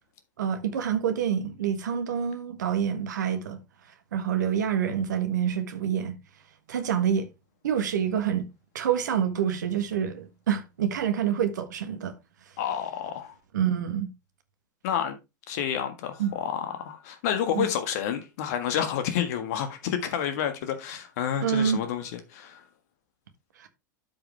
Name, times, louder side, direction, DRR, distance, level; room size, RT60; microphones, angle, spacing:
voice 1, 0.4-3.6 4.1-6.2 6.7-7.3 7.6-8.5 8.7-12.1 13.5-14.1 16.2-16.3 17.5-17.7 21.4-21.8 23.6-23.7, right 8 dB, 65° right, 1.5 m, -27 dB
voice 2, 12.6-13.3 14.8-15.2 15.5-22.6, left 9 dB, 55° left, 1.6 m, -29 dB
12.5 x 5.1 x 3.3 m
figure-of-eight pair, 85°, 10 cm